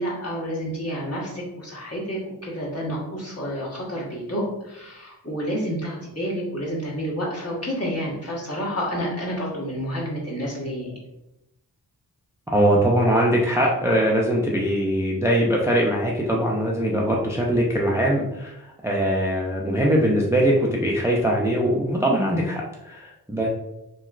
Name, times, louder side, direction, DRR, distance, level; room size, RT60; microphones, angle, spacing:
voice 1, 0.0-10.9, equal, 40° left, -5 dB, 1.2 m, -29 dB
voice 2, 12.5-23.5, equal, 10° right, -2 dB, 0.4 m, -21 dB
3.0 x 3.0 x 2.4 m, 0.90 s
wide cardioid pair, 85°, 39 cm